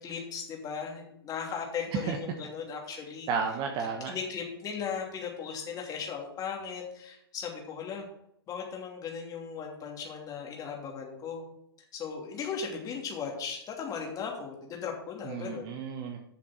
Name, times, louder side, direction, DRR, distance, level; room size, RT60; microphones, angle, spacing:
voice 1, 0.0-3.3 4.1-8.1 8.5-11.5 11.9-15.8, left 6 dB, 30° left, 0 dB, 2.9 m, -37 dB
voice 2, 3.3-4.2 15.2-16.2, right 5 dB, 35° right, 3 dB, 1.3 m, -32 dB
7.4 x 7.2 x 6.0 m, 0.75 s
hypercardioid pair, 105°, 13 cm